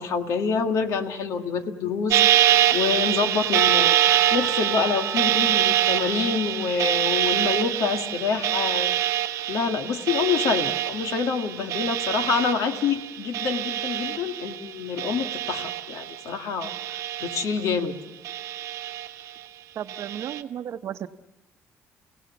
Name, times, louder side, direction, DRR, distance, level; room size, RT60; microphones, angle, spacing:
voice 1, 0.0-4.0 4.3-8.9 9.5-18.0, left 5 dB, 75° left, 6 dB, 1.8 m, -27 dB
sound 1, 2.1-14.7 15.0-16.2 16.6-17.8 18.2-19.3 19.9-20.4, right 12 dB, 85° right, 1.0 m, -25 dB
Percussion, 3.5-7.4, right 7 dB, 30° right, 0.7 m, -34 dB
voice 2, 19.8-21.1, right 9 dB, 55° right, 10 dB, 0.8 m, -34 dB
30.0 x 17.0 x 7.1 m, 1.1 s
cardioid pair, 135°, 6 cm